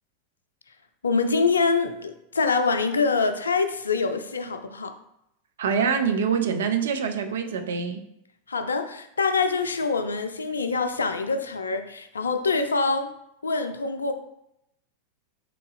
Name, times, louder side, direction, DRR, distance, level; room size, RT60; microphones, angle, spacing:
voice 1, 1.0-4.9 8.5-13.1 13.4-14.1, left 4 dB, 75° left, 8 dB, 0.4 m, -25 dB
voice 2, 5.6-8.0, right 6 dB, 60° right, 7 dB, 0.4 m, -25 dB
3.7 x 3.3 x 3.4 m, 0.81 s
figure-of-eight pair, 90°, 0 cm